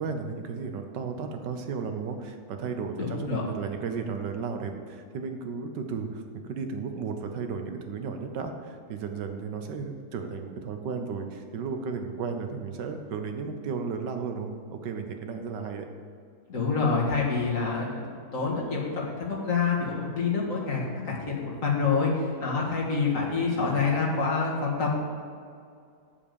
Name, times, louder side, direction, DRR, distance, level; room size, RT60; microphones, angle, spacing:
voice 1, 0.0-15.9, right 5 dB, 85° right, 5 dB, 1.6 m, -34 dB
voice 2, 3.0-3.4 16.5-18.1 18.3-25.0, left 4 dB, 50° left, -3 dB, 2.1 m, -27 dB
8.3 x 7.2 x 6.9 m, 2.3 s
omnidirectional pair, 1.8 m